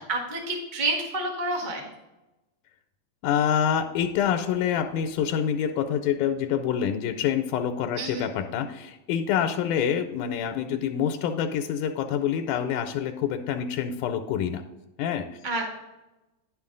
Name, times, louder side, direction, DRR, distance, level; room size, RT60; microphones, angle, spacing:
voice 1, 0.1-1.9 7.9-8.3 15.4-15.6, right 2 dB, 25° right, 0 dB, 1.0 m, -29 dB
voice 2, 3.2-14.6 15.0-15.3, left 8 dB, 85° left, 6 dB, 2.1 m, -26 dB
10.5 x 5.8 x 3.8 m, 1.0 s
omnidirectional pair, 3.5 m